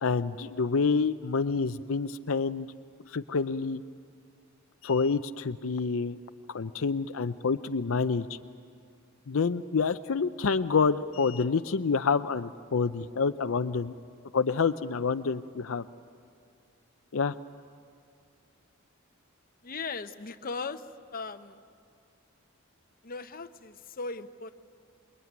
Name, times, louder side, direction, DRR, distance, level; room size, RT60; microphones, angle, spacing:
voice 1, 0.0-2.7 3.1-3.8 4.8-6.2 6.5-8.4 9.3-13.9 14.3-15.8 17.1-17.4, left 5 dB, 75° left, 10 dB, 0.6 m, -28 dB
voice 2, 19.6-20.9 21.1-21.6 23.0-24.5, left 4 dB, 45° left, 9 dB, 0.9 m, -38 dB
27.0 x 22.0 x 9.5 m, 2.3 s
head